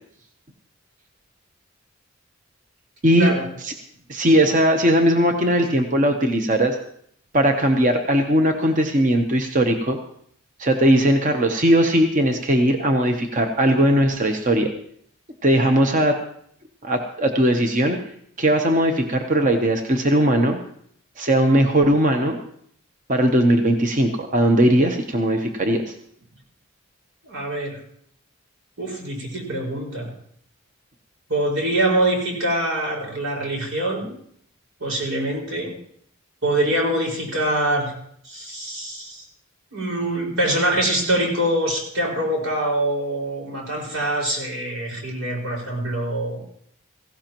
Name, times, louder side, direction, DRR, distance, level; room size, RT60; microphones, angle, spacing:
voice 1, 4.1-6.8 7.3-10.0 10.6-14.7 15.4-16.2 16.8-18.0 18.4-20.6 21.2-22.4 23.1-25.9, right 1 dB, 40° right, 4 dB, 0.9 m, -19 dB
voice 2, 27.2-27.8 28.8-30.1 31.3-34.1 34.8-35.7 36.4-37.9 38.2-39.2 39.7-46.4, right 1 dB, 90° right, -1 dB, 5.2 m, -24 dB
17.0 x 16.0 x 3.0 m, 0.66 s
head